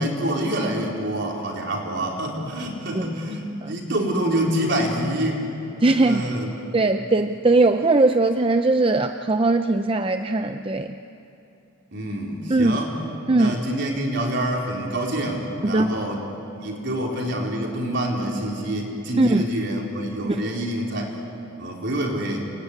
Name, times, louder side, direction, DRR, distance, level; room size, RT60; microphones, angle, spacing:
voice 1, 0.0-5.4 6.0-6.5 11.9-13.0 13.3-16.2 16.6-21.1 21.6-22.5, right 1 dB, 55° right, -1 dB, 4.4 m, -26 dB
voice 2, 5.8-6.2 6.7-11.0 12.5-12.8 13.3-13.5 15.6-16.0 19.2-19.4 20.2-20.4, right 2 dB, 25° right, 8 dB, 0.5 m, -20 dB
29.5 x 20.5 x 9.8 m, 2.9 s
head